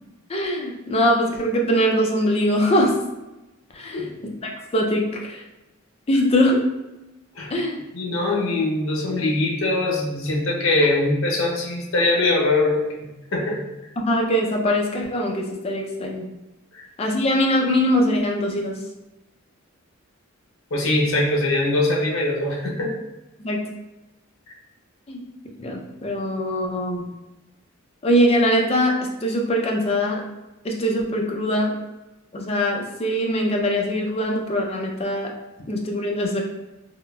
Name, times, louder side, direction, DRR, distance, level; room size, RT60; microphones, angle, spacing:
voice 1, 0.3-2.9 3.8-5.4 6.1-6.6 7.5-7.8 14.0-16.3 17.0-18.8 23.4-23.6 25.1-25.2 25.6-27.1 28.0-30.2 30.6-31.7 32.3-35.3 35.7-36.4, equal, 30° left, 1 dB, 0.4 m, -22 dB
voice 2, 7.9-13.6 16.7-16.8 20.7-22.9, left 2 dB, 80° left, -1 dB, 0.7 m, -22 dB
3.6 x 2.0 x 2.2 m, 0.99 s
head